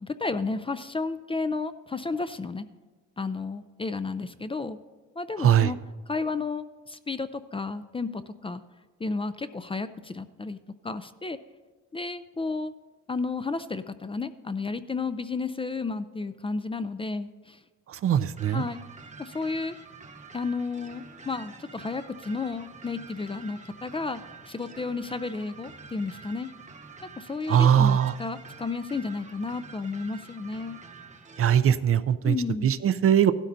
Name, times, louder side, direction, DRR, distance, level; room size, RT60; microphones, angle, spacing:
voice 1, 0.0-2.7 3.2-4.8 5.2-5.8 6.1-8.6 9.0-10.6 10.8-11.4 11.9-12.7 13.1-17.6 18.5-18.8 19.2-19.8 20.3-24.2 24.5-26.5 27.2-30.8 32.2-32.7, left 4 dB, 20° left, 12 dB, 0.4 m, -32 dB
voice 2, 5.4-5.7 17.9-18.7 27.5-28.1 31.4-32.4 32.6-33.3, right 9 dB, 50° right, 14 dB, 0.5 m, -21 dB
sound 1, 18.4-31.6, right 4 dB, 25° right, 0.9 m, -47 dB
16.0 x 12.5 x 2.6 m, 1.3 s
cardioid pair, 90°, 30 cm